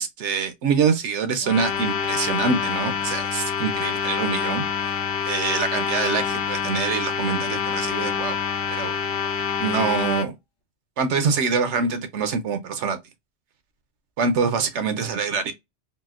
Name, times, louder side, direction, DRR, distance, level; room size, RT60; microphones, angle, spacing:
voice 1, 0.0-4.9 5.3-8.4 8.7-8.9 9.6-10.3 11.0-13.0 14.2-15.5, right 5 dB, 75° right, 0.9 m, -25 dB
sound 1, 1.4-10.3, left 7 dB, 70° left, 0.8 m, -26 dB
4.0 x 2.0 x 2.4 m
omnidirectional pair, 1.2 m